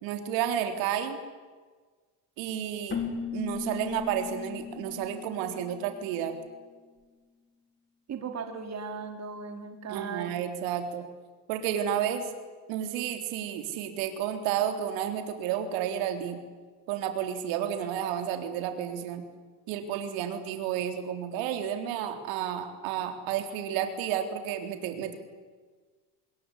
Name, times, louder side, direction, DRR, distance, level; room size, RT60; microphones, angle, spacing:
voice 1, 0.0-1.2 2.4-3.0 3.3-6.3 9.9-11.0 11.5-12.3 12.7-16.4 16.9-19.2 19.7-25.1, right 9 dB, 75° right, 6 dB, 3.9 m, -31 dB
Keyboard (musical), 2.9-6.5, left 6 dB, 25° left, 3.9 m, -37 dB
voice 2, 8.1-10.3, right 5 dB, 35° right, 5 dB, 3.4 m, -37 dB
26.0 x 21.5 x 10.0 m, 1.4 s
cardioid pair, 135°, 45 cm